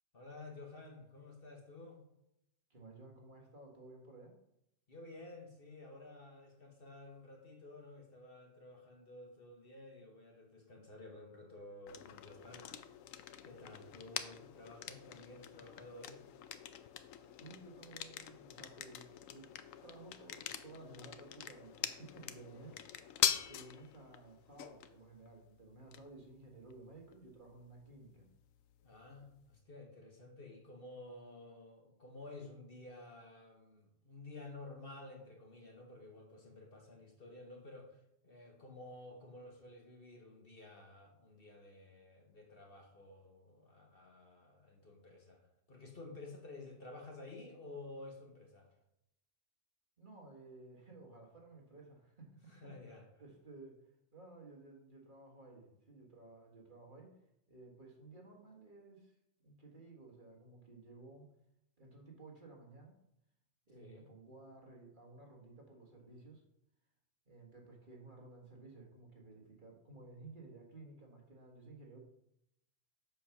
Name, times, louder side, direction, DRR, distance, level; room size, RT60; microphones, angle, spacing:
voice 1, 0.1-2.0 4.9-12.7 13.4-16.2 22.4-22.8 28.8-48.7 52.5-53.0 63.7-64.1, left 2 dB, 45° left, 2 dB, 1.4 m, -52 dB
voice 2, 2.7-4.3 17.3-19.5 19.8-22.8 23.5-28.3 50.0-52.7 53.2-53.8 54.1-57.2 57.5-59.2 59.4-61.3 61.8-62.9 63.7-66.4 67.3-72.0, right 3 dB, 40° right, 0 dB, 1.7 m, -55 dB
sound 1, 11.9-29.6, left 10 dB, 90° left, 1.0 m, -44 dB
7.5 x 4.7 x 5.8 m, 0.80 s
omnidirectional pair, 1.3 m